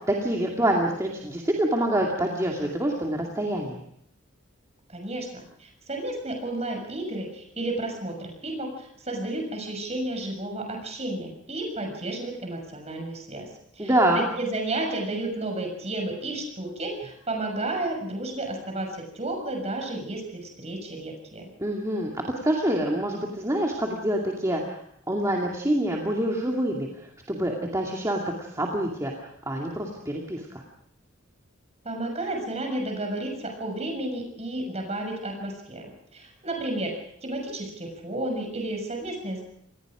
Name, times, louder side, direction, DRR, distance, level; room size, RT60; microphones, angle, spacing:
voice 1, 0.1-3.8 13.8-14.2 21.6-24.8 25.1-30.6, right 1 dB, 15° right, -1 dB, 2.5 m, -26 dB
voice 2, 4.9-21.4 31.8-39.4, right 2 dB, 30° right, 3 dB, 6.6 m, -32 dB
27.5 x 20.0 x 5.0 m, 0.71 s
head